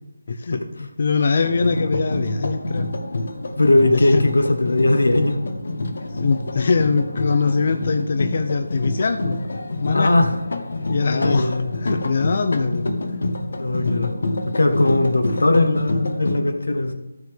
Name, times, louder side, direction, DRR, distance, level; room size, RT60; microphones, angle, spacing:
voice 1, 0.3-2.9 3.9-4.2 6.1-9.4 9.8-10.2 10.9-12.9, left 4 dB, 45° left, 6 dB, 0.5 m, -22 dB
sound 1, 1.4-16.4, left 2 dB, 65° left, 1.0 m, -27 dB
voice 2, 3.6-5.4 9.9-10.3 11.0-11.7 13.6-14.1 14.4-16.9, left 2 dB, 85° left, 7 dB, 1.3 m, -19 dB
14.5 x 6.3 x 3.5 m, 1.0 s
figure-of-eight pair, 170°, 0 cm